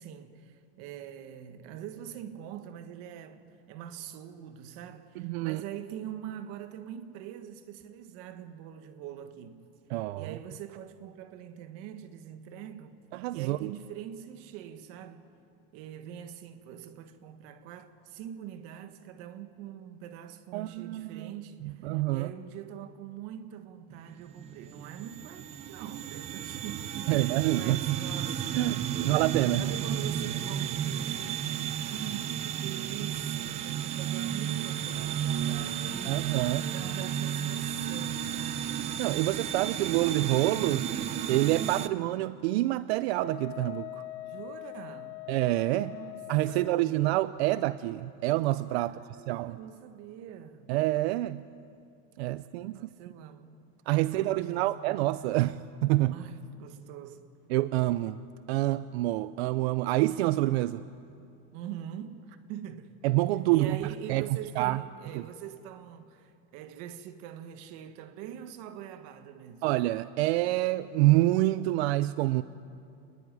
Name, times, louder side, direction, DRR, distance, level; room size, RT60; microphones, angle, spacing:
voice 1, 0.0-9.7 10.2-13.0 13.3-15.3 15.7-29.1 29.6-36.2 36.7-38.6 44.3-45.2 45.7-46.8 48.7-50.7 52.7-53.6 54.0-54.7 56.1-57.3 61.5-63.0 63.5-69.7, right 10 dB, 45° right, 1.6 m, -43 dB
voice 2, 5.2-5.6 9.9-10.3 13.1-13.7 20.5-21.3 21.8-22.3 27.1-28.0 28.6-29.6 36.0-36.7 39.0-40.9 41.3-44.0 45.3-46.0 46.3-49.0 49.3-49.6 50.7-51.4 52.2-52.9 53.9-56.2 57.5-58.2 58.5-60.8 63.0-63.8 64.1-64.2 64.6-64.8 65.1-65.2 69.6-72.4, right 17 dB, 80° right, 0.7 m, -27 dB
sound 1, 23.9-41.9, right 9 dB, 20° right, 0.6 m, -33 dB
Wind instrument woodwind instrument, 43.2-46.9, left 18 dB, 85° left, 1.0 m, -42 dB
27.5 x 20.5 x 10.0 m
cardioid pair, 180°, 32 cm